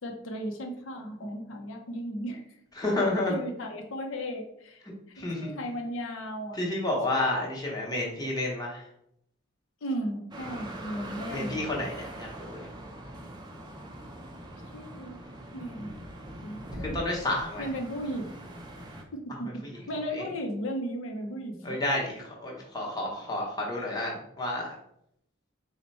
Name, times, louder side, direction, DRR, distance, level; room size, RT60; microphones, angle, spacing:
voice 1, 0.0-2.4 3.3-4.8 5.1-6.6 7.1-7.2 9.8-11.6 14.7-15.2 15.5-15.9 16.4-17.0 17.6-18.3 19.1-21.7, equal, 70° left, 3 dB, 0.5 m, -35 dB
voice 2, 2.8-3.4 5.2-5.6 6.6-8.8 11.3-12.7 16.8-17.6 20.1-20.2 21.6-24.7, left 1 dB, 20° left, -3 dB, 0.8 m, -30 dB
sound 1, 10.3-19.0, right 1 dB, 20° right, 0.5 m, -42 dB
4.2 x 2.1 x 4.0 m, 0.75 s
head